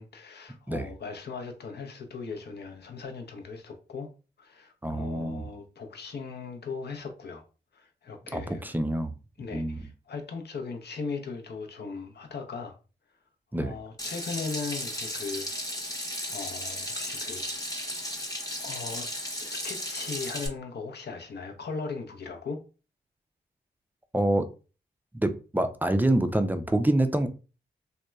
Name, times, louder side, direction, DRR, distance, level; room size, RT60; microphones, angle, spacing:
voice 1, 0.0-4.1 4.4-7.4 7.7-8.7 9.4-12.8 13.6-15.5 15.8-15.9 16.3-17.7 18.6-19.1 19.4-22.6, left 4 dB, 60° left, 0.6 m, -38 dB
voice 2, 4.8-5.5 8.3-9.1 9.5-9.8 13.5-13.7 24.1-24.5 25.1-27.3, right 1 dB, 10° right, 0.4 m, -26 dB
Water tap faucet / Sink (filling or washing), 14.0-20.5, equal, 20° left, 0.8 m, -35 dB
2.8 x 2.2 x 2.2 m
supercardioid pair, 40°, 19 cm